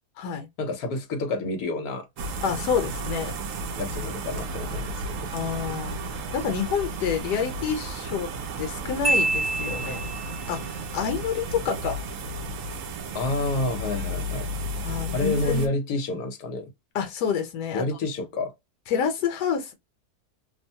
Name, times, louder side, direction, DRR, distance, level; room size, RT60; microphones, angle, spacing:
voice 1, 0.6-2.0 3.8-5.1 13.1-14.5 15.1-16.7 17.7-18.5, left 2 dB, 70° left, 1.3 m, -29 dB
sound 1, 2.2-15.7, right 2 dB, 70° right, 0.8 m, -33 dB
voice 2, 2.4-3.3 5.3-8.3 8.6-10.0 10.5-12.1 14.8-15.7 16.9-17.8 18.9-19.7, left 7 dB, 90° left, 1.3 m, -28 dB
Marimba xylophone, 9.0-10.5, right 2 dB, 10° right, 0.4 m, -26 dB
3.0 x 2.1 x 2.7 m
omnidirectional pair, 1.7 m